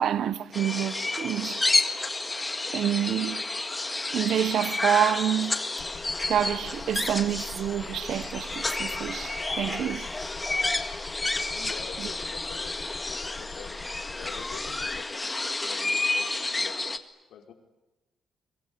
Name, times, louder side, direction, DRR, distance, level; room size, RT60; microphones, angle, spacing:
voice 1, 0.0-1.7 2.7-3.4 4.1-5.6 6.3-10.1, right 10 dB, 65° right, 1.0 m, -27 dB
sound 1, 0.5-17.0, left 2 dB, 15° left, 1.8 m, -30 dB
sound 2, 5.8-15.0, left 5 dB, 45° left, 1.4 m, -45 dB
voice 2, 11.5-12.8 13.0-16.3 16.6-16.9 17.3-17.5, left 8 dB, 80° left, 5.4 m, -46 dB
24.0 x 23.5 x 9.8 m
cardioid pair, 130°, 0 cm